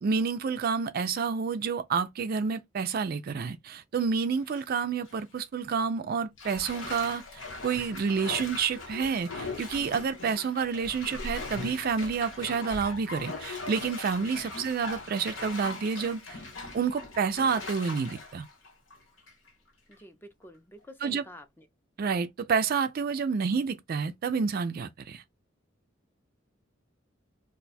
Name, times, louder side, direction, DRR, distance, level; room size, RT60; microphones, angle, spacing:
voice 1, 0.0-16.4 16.7-18.5 21.0-21.2 22.0-25.2, right 5 dB, 50° right, 0.4 m, -29 dB
Bathtub (filling or washing), 4.2-4.6 5.1-5.2 6.4-19.5 19.9-20.0, left 3 dB, 70° left, 1.0 m, -40 dB
voice 2, 19.9-21.7, left 1 dB, 10° left, 0.5 m, -49 dB
2.5 x 2.2 x 4.0 m
head